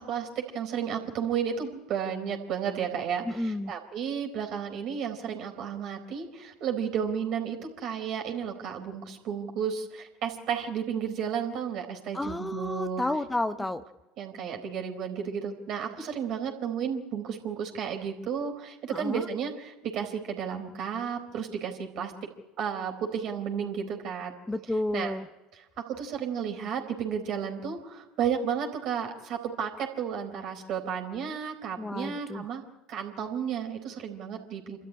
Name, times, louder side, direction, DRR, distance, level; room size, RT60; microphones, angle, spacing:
voice 1, 0.0-13.0 14.2-22.1 22.6-24.3 24.9-25.1 25.8-32.6 32.9-34.8, right 7 dB, 55° right, 3 dB, 4.3 m, -33 dB
voice 2, 3.2-3.7 12.1-13.8 18.9-19.3 24.5-25.3 31.8-32.5, left 2 dB, 10° left, 11 dB, 0.8 m, -31 dB
27.5 x 13.0 x 9.9 m, 1.1 s
hypercardioid pair, 75°, 0 cm